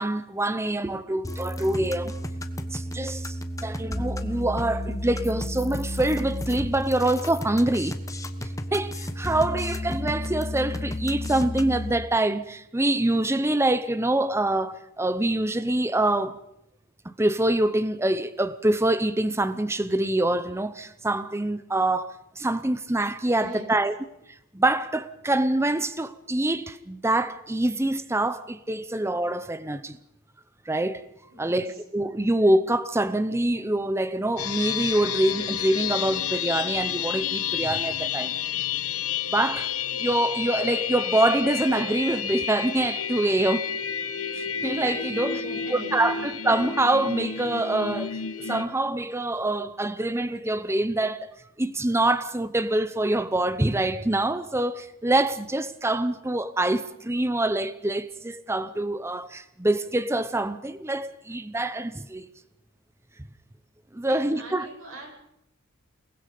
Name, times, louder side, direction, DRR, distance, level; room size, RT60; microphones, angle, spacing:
voice 1, 0.0-2.2 2.7-3.4 3.6-8.0 8.7-16.4 17.0-23.9 24.5-30.0 30.7-31.0 31.4-38.3 39.3-39.7 40.0-43.7 44.3-45.4 45.7-51.3 51.6-62.3 63.9-64.7, right 1 dB, 10° right, 0.8 m, -25 dB
sound 1, 1.2-11.9, left 1 dB, 15° left, 1.3 m, -32 dB
voice 2, 23.4-23.8 31.3-31.8 45.0-46.2 64.0-65.3, right 1 dB, 75° right, 7.9 m, -42 dB
sound 2, 34.4-48.6, left 8 dB, 85° left, 1.4 m, -30 dB
29.5 x 20.0 x 5.3 m
head